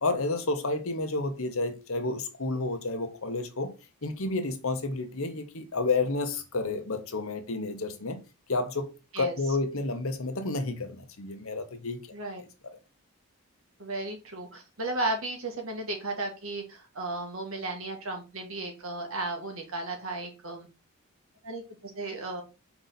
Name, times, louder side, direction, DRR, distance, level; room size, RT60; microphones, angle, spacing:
voice 1, 0.0-3.8 4.0-8.2 8.5-12.0, left 3 dB, 70° left, 1.1 m, -30 dB
voice 2, 13.8-20.7 21.4-22.4, right 2 dB, 65° right, 2.0 m, -34 dB
5.9 x 4.0 x 4.1 m
head